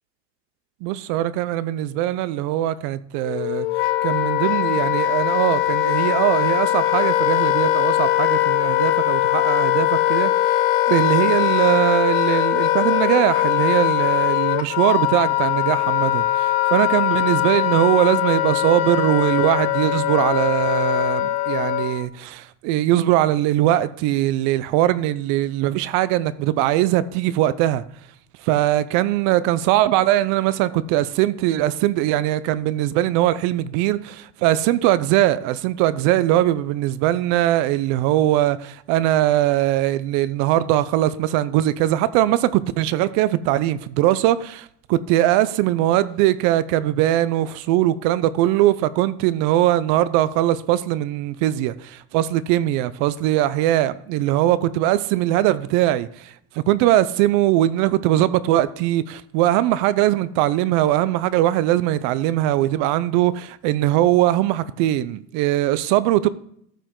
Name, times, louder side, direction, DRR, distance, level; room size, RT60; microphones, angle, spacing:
voice 1, 0.8-3.7 4.0-10.6 10.9-27.8 28.5-66.3, right 14 dB, 55° right, 0.5 m, -21 dB
Wind instrument woodwind instrument, 3.2-22.0, left 14 dB, 60° left, 0.7 m, -21 dB
13.5 x 5.0 x 3.8 m
supercardioid pair, 150°, 36 cm